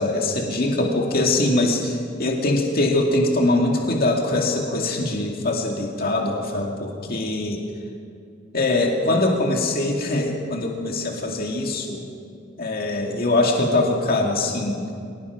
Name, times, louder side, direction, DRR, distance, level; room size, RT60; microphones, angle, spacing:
voice 1, 0.0-7.6 8.5-12.0 12.6-14.8, left 2 dB, 50° left, 0 dB, 2.3 m, -22 dB
25.0 x 19.0 x 6.1 m, 2.5 s
head